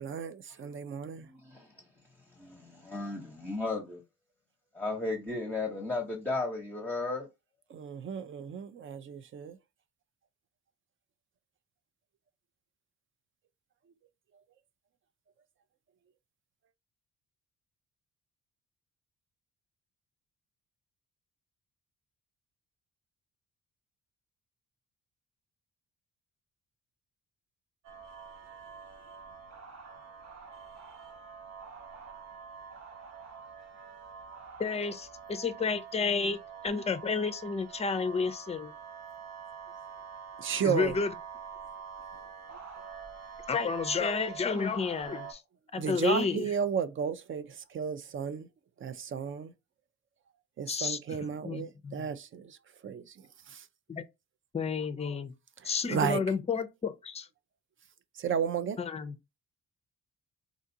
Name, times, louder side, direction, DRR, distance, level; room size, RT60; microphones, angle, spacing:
voice 1, 0.0-1.3 7.7-9.6 40.4-41.0 45.8-48.5 48.8-49.5 50.6-52.6 52.8-53.7 55.6-56.2 58.1-58.8, right 7 dB, 45° right, 0.5 m, -33 dB
voice 2, 1.2-1.7 2.4-4.0 4.7-7.3, left 3 dB, 5° left, 0.8 m, -34 dB
sound 1, 27.8-45.3, right 6 dB, 60° right, 1.0 m, -46 dB
voice 3, 34.6-36.4 36.6-38.7 40.6-41.1 43.5-45.4 45.7-46.4 50.7-51.0 51.4-52.1 53.9-54.0 54.5-55.3 55.6-57.3 58.8-59.1, left 5 dB, 20° left, 0.5 m, -31 dB
3.8 x 2.4 x 2.7 m
cardioid pair, 90°, 30 cm